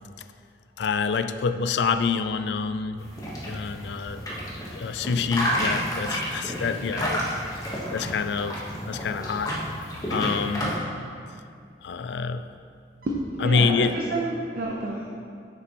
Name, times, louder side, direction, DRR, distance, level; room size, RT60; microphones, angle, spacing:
voice 1, 0.8-3.0 3.5-4.2 4.7-7.2 7.9-8.6 8.9-9.5 10.1-10.7 11.8-12.4 13.4-14.0, left 5 dB, 70° left, 10 dB, 0.4 m, -26 dB
sound 1, 3.0-10.8, equal, 20° left, 1.3 m, -31 dB
voice 2, 13.0-15.1, right 2 dB, 55° right, -2 dB, 0.7 m, -29 dB
9.5 x 6.9 x 3.0 m, 2.3 s
head